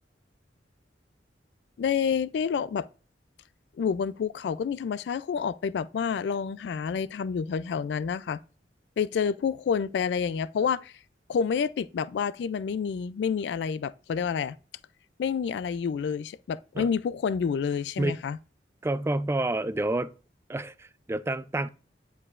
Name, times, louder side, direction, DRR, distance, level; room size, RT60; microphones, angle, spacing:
voice 1, 1.8-2.9 3.8-8.4 9.0-10.9 11.3-14.6 15.2-18.4, left 6 dB, 70° left, 0.3 m, -28 dB
voice 2, 18.8-20.1 20.5-21.7, right 2 dB, 15° right, 0.3 m, -29 dB
9.8 x 4.6 x 2.4 m
head